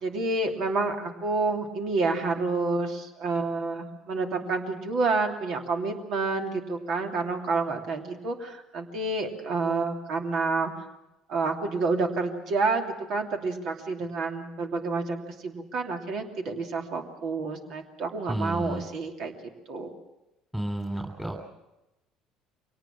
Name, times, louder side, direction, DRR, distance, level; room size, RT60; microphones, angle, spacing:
voice 1, 0.0-10.7 11.3-19.4 19.7-19.9, right 3 dB, 60° right, 4 dB, 2.8 m, -29 dB
voice 2, 18.3-18.8 20.5-21.4, right 1 dB, 5° right, 2 dB, 3.2 m, -31 dB
24.5 x 18.5 x 7.4 m, 0.96 s
hypercardioid pair, 65°, 0 cm